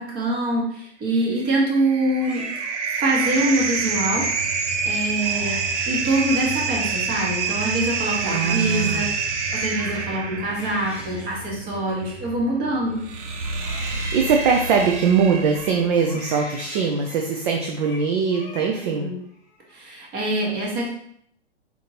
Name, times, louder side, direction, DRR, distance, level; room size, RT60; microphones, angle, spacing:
voice 1, 0.0-2.5 3.0-4.3 4.8-5.6 5.9-9.3 9.5-13.0 18.8-19.2 19.7-20.9, right 1 dB, 30° right, -2 dB, 1.3 m, -24 dB
sound 1, 1.4-16.0, right 5 dB, 85° right, 0.7 m, -27 dB
Crying sobbing, 2.0-4.3 4.8-5.0 5.2-6.9 7.2-13.0 13.4-17.4 17.6-18.0 18.3-19.0 19.4-20.0, left 2 dB, 5° right, 1.1 m, -42 dB
voice 2, 8.2-9.0 13.8-19.1, right 5 dB, 45° right, 2 dB, 0.6 m, -22 dB
4.2 x 3.5 x 2.8 m, 0.68 s
hypercardioid pair, 135°, 34 cm